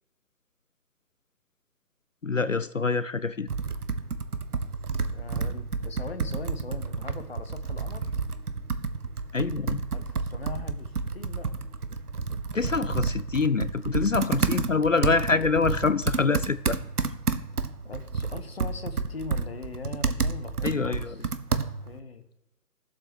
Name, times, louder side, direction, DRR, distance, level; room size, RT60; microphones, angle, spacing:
voice 1, 2.2-3.5 9.3-9.9 12.5-16.8 20.6-21.1, left 4 dB, 55° left, 15 dB, 0.5 m, -25 dB
Computer keyboard, 3.5-22.0, right 4 dB, 65° right, 1.1 m, -30 dB
voice 2, 5.1-8.1 9.9-11.6 17.8-22.2, left 4 dB, 40° left, 9 dB, 1.2 m, -41 dB
14.0 x 7.8 x 6.5 m, 0.91 s
figure-of-eight pair, 160°, 49 cm